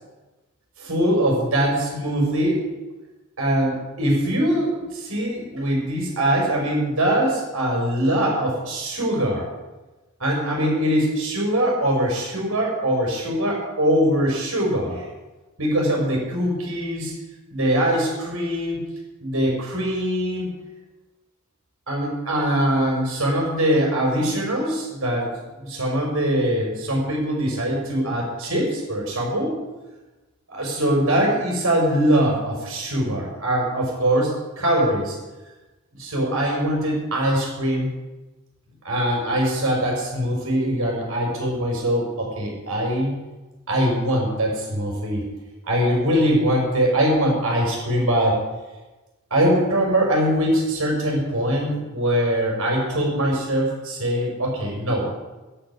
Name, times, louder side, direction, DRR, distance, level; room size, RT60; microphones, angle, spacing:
voice 1, 0.8-2.6 3.4-9.5 10.2-15.0 15.6-17.1 17.5-18.8 19.2-20.5 21.9-29.5 30.5-35.2 36.0-37.9 38.8-43.1 43.7-45.2 45.7-48.4 49.3-55.1, equal, 75° right, -1 dB, 6.2 m, -22 dB
10.5 x 10.0 x 9.7 m, 1.2 s
head